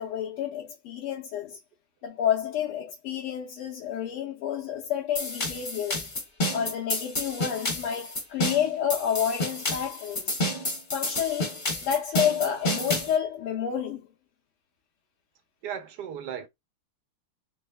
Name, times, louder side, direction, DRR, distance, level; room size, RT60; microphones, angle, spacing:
voice 1, 0.0-1.6 2.0-6.1 6.5-10.3 10.9-14.1, left 9 dB, 85° left, 1.8 m, -29 dB
sound 1, 5.2-13.1, left 1 dB, 35° left, 0.8 m, -30 dB
voice 2, 15.6-16.5, right 8 dB, 80° right, 0.9 m, -35 dB
4.2 x 3.0 x 2.2 m
omnidirectional pair, 2.4 m